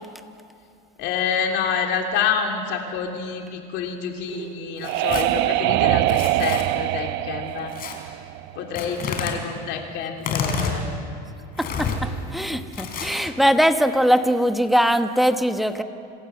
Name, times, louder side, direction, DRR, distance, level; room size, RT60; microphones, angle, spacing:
voice 1, 1.0-7.7 8.5-10.9, left 7 dB, 60° left, 3 dB, 3.1 m, -27 dB
sound 1, 4.3-8.9, right 17 dB, 60° right, 0.5 m, -23 dB
Tearing, 4.8-5.3 6.1-6.6 7.7-7.9 8.8-9.3 10.2-10.8 11.6-12.0 12.7-13.3, left 6 dB, 45° left, 3.9 m, -29 dB
voice 2, 11.6-15.8, equal, ahead, 8 dB, 1.2 m, -21 dB
26.0 x 13.0 x 8.0 m, 2.5 s
supercardioid pair, 110°, 21 cm